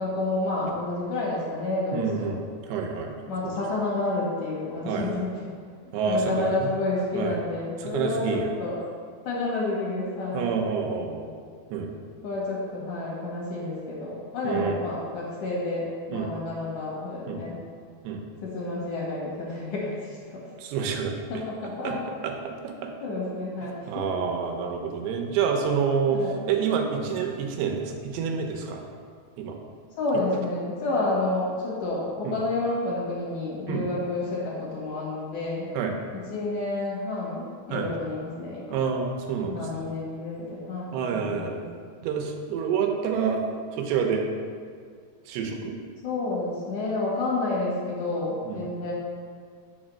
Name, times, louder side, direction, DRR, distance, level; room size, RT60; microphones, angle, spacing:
voice 1, 0.0-2.3 3.3-5.3 5.8-8.8 9.2-10.6 12.2-17.6 18.4-20.4 21.3-22.0 23.0-23.8 26.1-26.4 30.0-35.7 36.3-38.8 39.4-41.6 46.0-48.9, left 2 dB, 60° left, -5 dB, 2.4 m, -30 dB
voice 2, 1.9-2.4 2.7-3.2 3.4-3.5 4.9-5.2 5.9-6.6 7.2-7.4 7.8-8.5 10.3-11.3 11.7-11.9 14.4-14.8 16.1-16.3 17.3-17.4 18.0-18.2 20.6-21.4 21.8-21.9 22.2-22.9 23.9-28.8 29.4-29.6 32.2-32.3 33.7-33.8 35.7-35.9 37.7-37.9 38.7-39.8 40.9-41.6 42.0-43.4 43.7-44.3 45.3-45.8 48.4-48.6, right 6 dB, 80° right, 2 dB, 2.5 m, -28 dB
6.3 x 4.7 x 6.2 m, 2.1 s
omnidirectional pair, 4.9 m